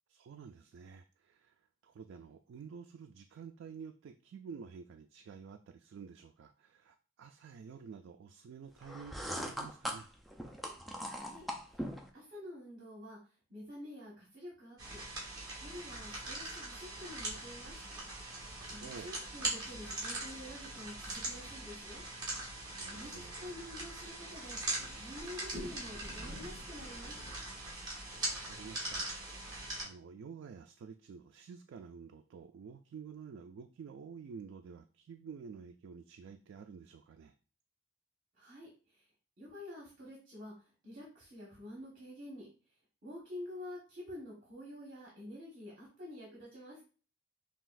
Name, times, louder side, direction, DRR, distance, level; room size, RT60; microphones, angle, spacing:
voice 1, 0.1-1.6 1.8-10.1 18.8-19.1 22.8-23.4 28.2-29.1 29.8-37.3, right 6 dB, 75° right, 6 dB, 0.3 m, -50 dB
sound 1, 8.8-12.1, equal, ahead, 0.4 m, -41 dB
voice 2, 11.1-11.5 12.1-13.2 13.5-15.0 15.6-17.7 18.7-22.0 22.9-24.6 24.9-27.1 38.4-38.7 39.4-40.5 40.8-42.5 43.0-46.8, left 1 dB, 45° right, -5 dB, 1.3 m, -48 dB
sound 2, 14.8-29.8, right 2 dB, 20° right, 1.2 m, -41 dB
5.8 x 2.4 x 2.5 m, 0.37 s
head